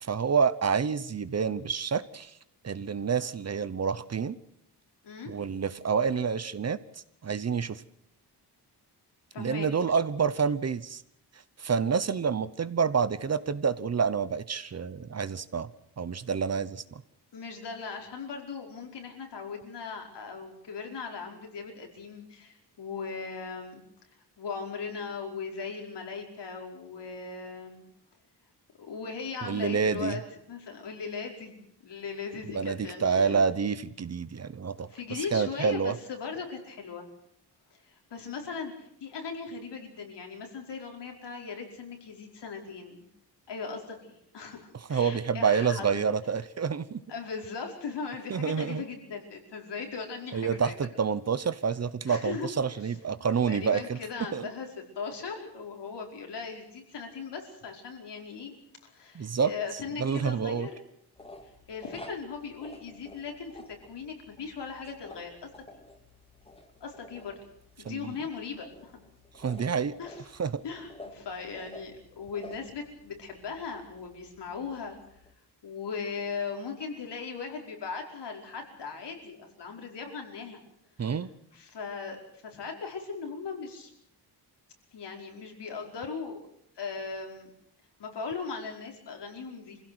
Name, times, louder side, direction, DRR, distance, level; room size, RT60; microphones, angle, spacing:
voice 1, 0.0-2.3 2.6-4.4 5.3-6.8 7.2-7.8 9.4-11.0 11.6-15.7 16.0-17.0 29.4-30.2 32.5-34.9 35.3-35.9 44.9-47.0 48.3-48.8 50.3-54.0 54.3-54.5 59.1-59.5 60.0-60.7 67.9-68.2 69.3-69.9 70.4-70.6 81.0-81.3, right 6 dB, 40° right, 15 dB, 0.9 m, -28 dB
voice 2, 9.3-9.7 17.3-23.8 24.4-27.8 28.8-30.2 30.5-31.5 31.8-33.5 34.9-37.1 37.8-43.1 43.5-46.1 47.1-50.7 52.1-52.5 53.5-54.7 55.0-58.5 58.8-60.7 61.7-65.5 66.8-67.3 67.8-69.0 70.0-70.2 70.6-75.0 75.6-80.6 81.5-83.9 84.9-86.4 86.8-87.5 88.0-89.8, left 5 dB, 80° left, 1 dB, 5.1 m, -38 dB
sound 1, 61.1-75.3, left 1 dB, 15° left, 2.5 m, -51 dB
25.5 x 16.5 x 7.9 m, 0.71 s
wide cardioid pair, 170°, 41 cm